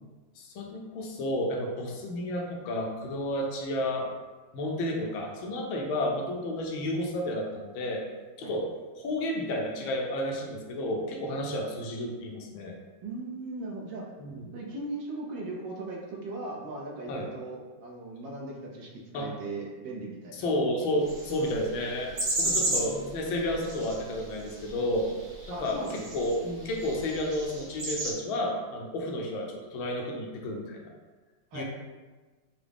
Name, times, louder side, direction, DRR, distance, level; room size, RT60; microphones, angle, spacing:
voice 1, 0.4-4.1 4.5-8.0 8.4-8.6 9.0-12.7 14.2-14.5 17.1-17.3 19.1-19.3 20.3-22.1 22.4-25.1 25.5-30.9 31.5-31.6, left 1 dB, 80° left, 0 dB, 1.5 m, -31 dB
voice 2, 13.0-14.0 14.5-20.5 22.4-23.0 25.5-26.0 31.5-31.6, right 2 dB, 70° right, -1 dB, 1.4 m, -38 dB
sound 1, 21.0-28.1, right 2 dB, 50° right, 1.5 m, -34 dB
6.0 x 2.2 x 3.4 m, 1.3 s
omnidirectional pair, 2.2 m